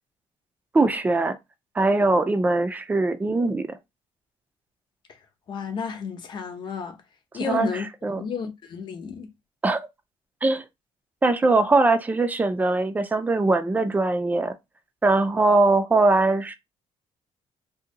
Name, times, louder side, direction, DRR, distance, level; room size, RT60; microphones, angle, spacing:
voice 1, 0.7-1.4 1.7-3.8 7.4-8.3 9.6-9.8 10.4-10.6 11.2-14.5 15.0-16.5, right 2 dB, 15° right, 0.4 m, -21 dB
voice 2, 5.5-7.0 7.3-7.9 8.2-9.3, left 6 dB, 45° left, 0.8 m, -31 dB
2.8 x 2.6 x 3.7 m
cardioid pair, 140°, 11 cm